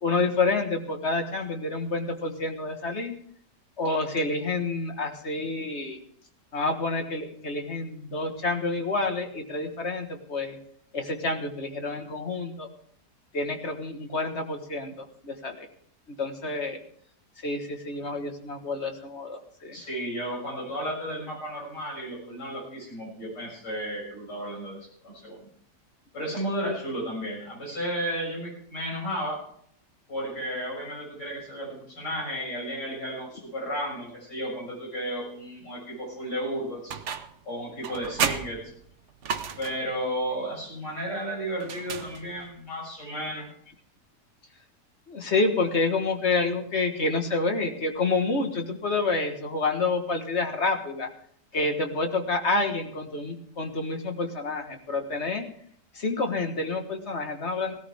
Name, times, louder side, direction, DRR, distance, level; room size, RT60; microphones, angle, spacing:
voice 1, 0.0-3.1 3.8-6.0 6.5-10.6 10.9-12.7 13.3-15.7 16.1-16.8 17.4-19.8 26.6-26.8 45.1-51.1 51.5-55.5 55.9-57.7, left 3 dB, 40° left, 5 dB, 1.7 m, -28 dB
voice 2, 19.7-24.8 25.0-25.4 26.1-29.4 30.1-37.0 37.4-38.6 39.6-43.5, equal, 75° left, -2 dB, 7.6 m, -33 dB
sound 1, 36.9-37.4 37.8-39.9 41.6-42.5, right 7 dB, 55° right, 1.0 m, -32 dB
17.0 x 13.5 x 3.5 m, 0.64 s
omnidirectional pair, 1.8 m